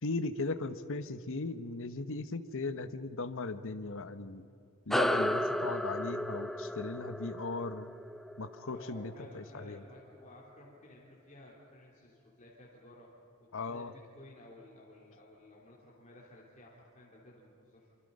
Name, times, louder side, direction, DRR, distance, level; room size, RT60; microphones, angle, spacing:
voice 1, 0.0-4.4 4.9-7.9 8.4-9.8 13.5-13.9, left 3 dB, 65° left, 10 dB, 1.0 m, -38 dB
sound 1, 4.9-9.7, left 1 dB, ahead, 0.6 m, -34 dB
voice 2, 8.7-13.2 13.7-17.9, left 1 dB, 35° left, -5 dB, 3.4 m, -55 dB
26.5 x 26.0 x 5.4 m, 2.3 s
head